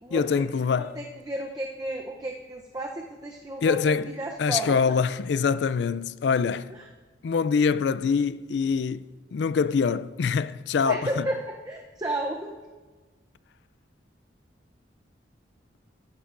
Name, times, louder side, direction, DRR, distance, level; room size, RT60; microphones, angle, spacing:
voice 1, 0.1-1.0 3.6-4.1 4.4-6.7 7.2-11.3, left 5 dB, 65° left, 0.3 m, -24 dB
voice 2, 0.8-5.0 6.7-6.8 10.8-12.5, right 1 dB, 20° right, 0.6 m, -33 dB
15.0 x 11.5 x 2.6 m
head